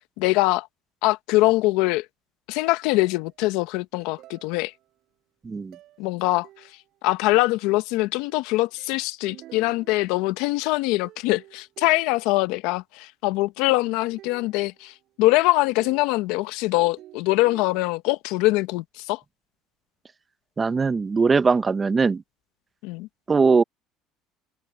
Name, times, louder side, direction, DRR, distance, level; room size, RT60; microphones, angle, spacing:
voice 1, 0.2-0.7 1.0-2.0 2.5-4.7 6.0-6.5 7.0-19.2 22.8-23.1, left 20 dB, 80° left, 1.1 m, -23 dB
sound 1, 2.9-3.4 4.0-5.0 5.7-6.1 6.4-7.0 8.2-10.8 11.0-12.4 13.6-16.7 17.0-17.9, right 15 dB, 60° right, 7.1 m, -50 dB
voice 2, 5.4-5.8 20.6-22.2 23.3-23.6, right 4 dB, 20° right, 0.6 m, -20 dB
cardioid pair, 120°, 0 cm